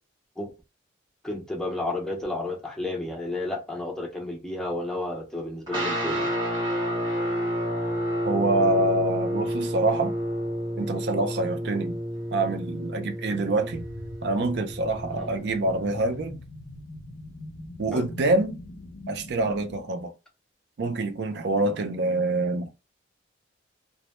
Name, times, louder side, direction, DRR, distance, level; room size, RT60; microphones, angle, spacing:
voice 1, 1.2-6.3 15.1-15.3 17.9-18.0, left 2 dB, 5° left, 0.4 m, -32 dB
sound 1, 5.7-16.2, equal, 25° right, 0.8 m, -30 dB
voice 2, 8.3-10.1 10.8-12.0 12.3-13.8 14.2-16.4 17.8-18.6 19.1-20.1 20.8-22.7, right 2 dB, 60° right, 0.4 m, -26 dB
sound 2, 13.7-19.8, left 1 dB, 85° left, 0.5 m, -43 dB
2.0 x 2.0 x 2.9 m
head